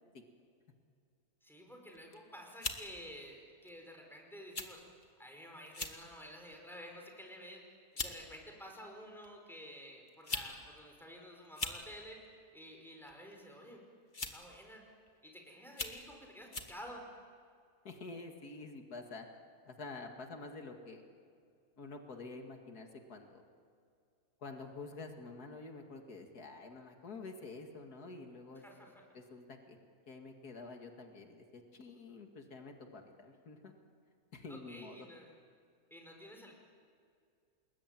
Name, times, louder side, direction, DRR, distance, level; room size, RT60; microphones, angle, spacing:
voice 1, 1.4-4.8 5.2-7.6 7.9-12.2 12.5-13.8 14.2-14.8 15.2-17.0 28.6-29.0 34.5-35.3 35.9-36.5, equal, ahead, 1 dB, 5.1 m, -51 dB
sound 1, 1.9-2.2 2.6-2.8 3.7-3.9 4.5-4.7 5.0-5.1 5.7-6.0 6.5-6.8 7.6-7.7 8.0-8.2 9.2-9.3 10.1-10.5 10.8-10.9 11.4-11.8 13.0-13.3 14.1-14.5 15.1-15.2 15.7-16.0 16.5-16.7, left 3 dB, 30° left, 1.9 m, -39 dB
voice 2, 17.8-19.3 19.7-21.0 21.8-23.4 24.4-28.6 29.1-29.8 30.1-33.7 34.3-35.1, left 3 dB, 85° left, 4 dB, 2.6 m, -48 dB
29.5 x 21.0 x 9.2 m, 2.3 s
omnidirectional pair, 1.6 m